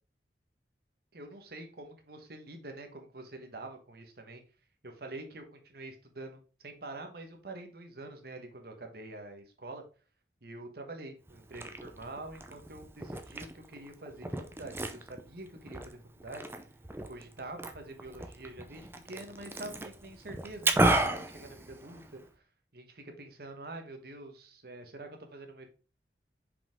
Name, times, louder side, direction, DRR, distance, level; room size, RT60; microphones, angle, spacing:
voice 1, 1.1-4.4 4.8-9.8 10.4-16.4 17.1-22.5 22.7-25.7, right 2 dB, 60° right, 5 dB, 1.3 m, -46 dB
Liquid, 11.3-22.3, right 2 dB, 15° right, 0.6 m, -34 dB
5.7 x 5.0 x 3.6 m, 0.37 s
head